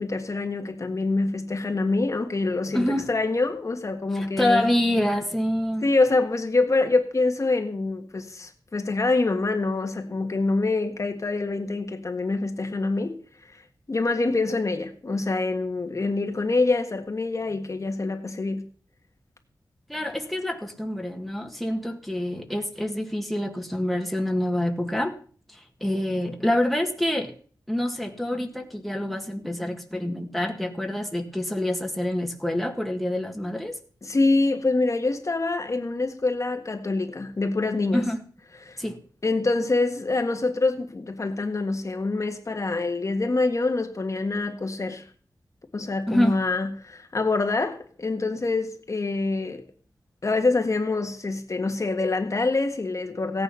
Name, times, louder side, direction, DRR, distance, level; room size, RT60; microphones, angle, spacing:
voice 1, 0.0-4.7 5.8-13.2 13.5-13.6 13.9-18.7 34.0-38.1 38.6-38.8 39.2-45.0 45.7-49.6 50.2-53.4, left 3 dB, 45° left, 1.6 m, -25 dB
voice 2, 2.7-3.1 4.1-5.9 19.9-25.1 25.5-27.3 27.7-33.8 37.9-38.2 38.8-39.0 46.1-46.4, left 1 dB, ahead, 1.9 m, -26 dB
16.5 x 9.5 x 5.8 m
wide cardioid pair, 115°, 8 cm